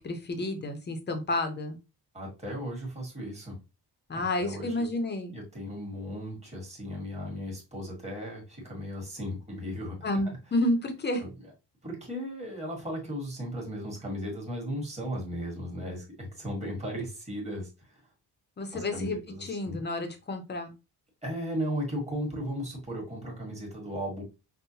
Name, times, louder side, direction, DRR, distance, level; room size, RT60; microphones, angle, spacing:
voice 1, 0.0-1.8 4.1-5.3 10.0-11.2 18.6-20.7, left 1 dB, 25° left, 6 dB, 0.7 m, -30 dB
voice 2, 2.1-3.6 4.1-4.9 5.3-10.0 10.2-10.4 11.2-11.3 11.8-18.0 18.7-19.8 21.2-24.2, equal, 15° right, -2 dB, 1.4 m, -36 dB
5.4 x 2.2 x 2.7 m, 0.27 s
wide cardioid pair, 180°, 39 cm